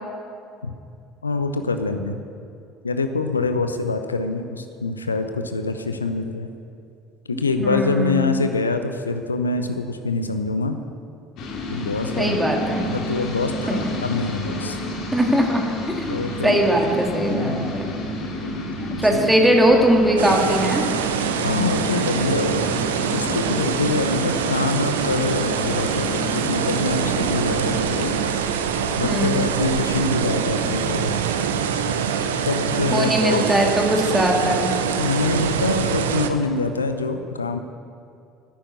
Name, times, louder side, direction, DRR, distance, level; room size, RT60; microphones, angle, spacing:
voice 1, 1.2-2.2 2.8-6.5 7.3-10.8 11.7-12.4 12.8-14.8 16.1-16.7 17.3-17.8 19.0-19.2 21.4-22.9 23.1-28.3 29.0-31.2 32.5-33.6 34.4-34.6 35.0-37.6, left 3 dB, 85° left, 8 dB, 0.7 m, -25 dB
voice 2, 7.3-8.2 12.2-12.9 13.7-13.9 15.1-17.9 18.9-20.9 29.0-29.4 32.9-34.7, right 1 dB, 5° right, 1 dB, 2.1 m, -20 dB
sound 1, 11.4-28.2, left 1 dB, 55° left, 2.2 m, -30 dB
sound 2, 20.2-36.3, right 7 dB, 75° right, 0.8 m, -24 dB
10.5 x 10.5 x 8.4 m, 2.5 s
figure-of-eight pair, 60°, 0 cm